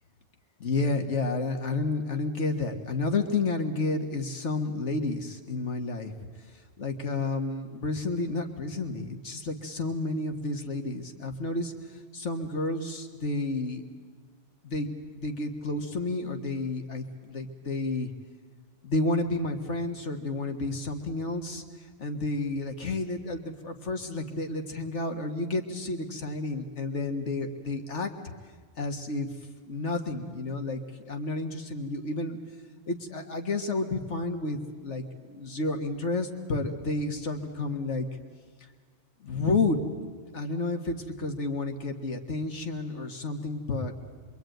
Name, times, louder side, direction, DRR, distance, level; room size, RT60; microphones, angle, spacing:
voice 1, 0.6-6.2 6.5-13.8 14.6-14.9 15.2-18.1 18.8-28.1 28.8-29.4 29.7-32.4 32.9-38.1 39.2-39.8 40.3-43.9, left 2 dB, 80° left, 5 dB, 1.9 m, -31 dB
26.0 x 23.5 x 9.2 m, 1.5 s
omnidirectional pair, 1.2 m